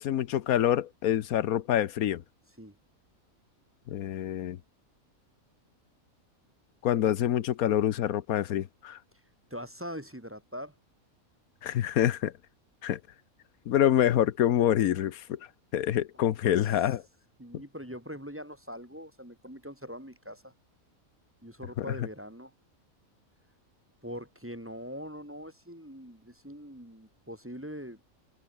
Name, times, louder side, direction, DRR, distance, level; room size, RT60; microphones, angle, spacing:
voice 1, 0.0-2.2 3.9-4.6 6.8-9.0 11.6-12.3 12.8-13.0 13.7-15.4 15.7-17.0 21.8-21.9, left 11 dB, 85° left, 1.3 m, -26 dB
voice 2, 9.5-10.7 16.1-16.7 17.4-20.5 21.4-22.5 24.0-28.0, equal, 10° right, 1.9 m, -42 dB
omnidirectional pair, 1.5 m